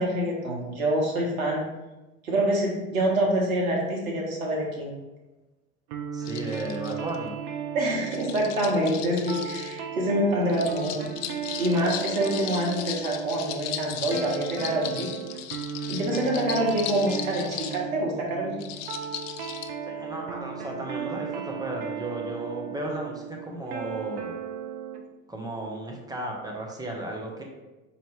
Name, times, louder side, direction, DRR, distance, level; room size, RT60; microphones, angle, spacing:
voice 1, 0.0-1.6 2.2-5.0 7.7-11.1 11.6-15.1 15.9-18.6, right 1 dB, 80° right, -2 dB, 1.2 m, -26 dB
sound 1, 5.9-25.0, right 8 dB, 55° right, 0.7 m, -36 dB
voice 2, 6.1-7.3 19.9-24.4 25.3-27.4, right 1 dB, 10° right, 0 dB, 0.8 m, -34 dB
sound 2, 6.3-7.2 8.0-9.8 10.5-17.8 18.6-19.7, left 10 dB, 40° left, 0.4 m, -37 dB
4.3 x 3.0 x 3.2 m, 1.1 s
hypercardioid pair, 85°, 41 cm